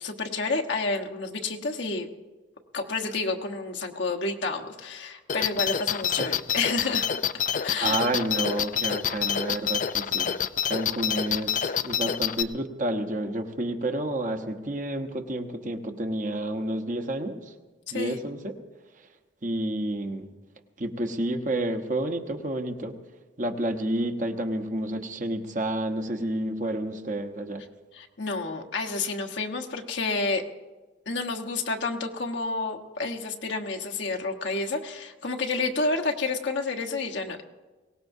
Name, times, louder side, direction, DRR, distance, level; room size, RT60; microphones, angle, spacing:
voice 1, 0.0-2.1 2.7-7.0 7.6-8.0 17.9-18.2 27.9-30.4 31.1-37.4, left 3 dB, 75° left, 1 dB, 1.3 m, -30 dB
sound 1, 5.3-12.4, left 8 dB, 45° left, 0.4 m, -27 dB
voice 2, 7.7-10.3 10.7-17.4 17.9-18.5 19.4-20.3 20.8-23.0 23.4-27.6, right 1 dB, 45° right, 5 dB, 1.1 m, -30 dB
22.5 x 18.5 x 2.7 m, 1.3 s
head